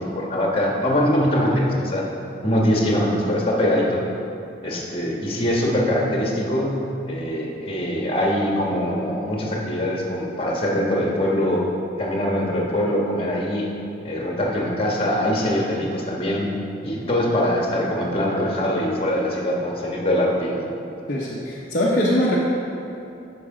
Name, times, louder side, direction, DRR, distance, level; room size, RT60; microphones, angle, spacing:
voice 1, 0.0-2.0 2.4-4.0 4.6-11.6 12.0-13.7 14.0-16.5 16.8-20.6, left 1 dB, 30° left, -2 dB, 1.5 m, -23 dB
voice 2, 21.1-22.4, left 1 dB, 50° left, -5 dB, 0.9 m, -22 dB
11.5 x 5.0 x 4.9 m, 2.9 s
head